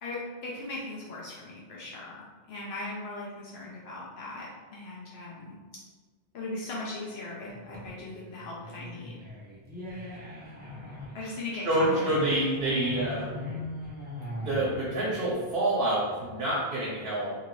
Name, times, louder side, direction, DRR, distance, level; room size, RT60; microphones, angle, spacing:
voice 1, 0.0-5.6 6.3-9.2 11.1-11.9, left 2 dB, 80° left, -5 dB, 0.8 m, -39 dB
sound 1, 7.5-16.5, left 1 dB, 10° right, 0.5 m, -40 dB
voice 2, 11.6-13.3 14.4-17.4, right 1 dB, 65° right, -5 dB, 0.8 m, -27 dB
2.7 x 2.5 x 3.0 m, 1.3 s
omnidirectional pair, 1.1 m